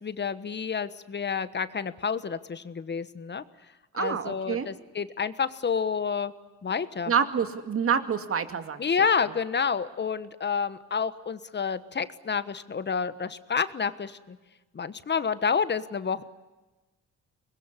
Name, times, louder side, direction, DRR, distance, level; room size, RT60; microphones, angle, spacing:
voice 1, 0.0-3.4 4.0-6.3 6.6-7.1 8.8-14.4 14.7-16.2, left 6 dB, 35° left, 14 dB, 1.3 m, -29 dB
voice 2, 3.9-4.7 7.1-8.8, right 7 dB, 45° right, 9 dB, 2.4 m, -27 dB
24.0 x 21.5 x 9.9 m, 1.2 s
cardioid pair, 90°, 30 cm